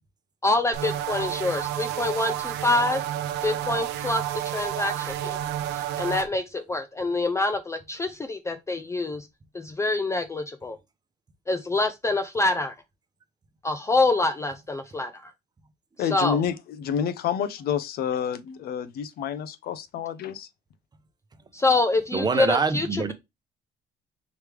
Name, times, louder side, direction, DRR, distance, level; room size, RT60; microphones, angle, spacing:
voice 1, 0.4-3.0 3.4-4.2 4.5-5.4 5.7-9.3 9.5-10.8 11.5-12.7 13.6-15.3 16.1-16.4 21.5-23.1, left 2 dB, 15° left, 0.4 m, -26 dB
sound 1, 0.7-6.3, right 12 dB, 90° right, 0.6 m, -30 dB
voice 2, 16.0-20.5, left 8 dB, 65° left, 0.6 m, -29 dB
voice 3, 22.1-23.1, right 4 dB, 25° right, 0.7 m, -24 dB
4.9 x 3.2 x 3.3 m
cardioid pair, 110°, 17 cm